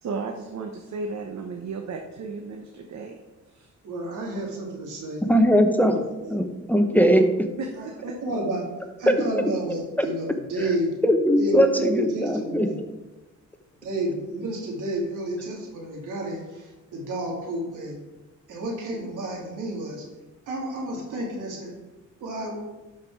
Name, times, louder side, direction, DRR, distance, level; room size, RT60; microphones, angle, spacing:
voice 1, 0.0-3.2 3.5-3.7 7.6-7.9, right 4 dB, 65° right, 3 dB, 1.0 m, -34 dB
voice 2, 3.8-5.3 5.8-6.4 7.0-7.2 7.7-8.7 9.0-11.0 11.4-12.7 13.8-18.0 18.5-20.1 20.5-21.7 22.2-22.6, right 1 dB, 85° right, 0 dB, 2.5 m, -31 dB
voice 3, 5.3-6.0 6.3-7.2 10.0-10.1 11.1-12.7, equal, 5° left, 6 dB, 1.0 m, -20 dB
11.5 x 5.2 x 4.7 m, 1.1 s
cardioid pair, 75°, 30 cm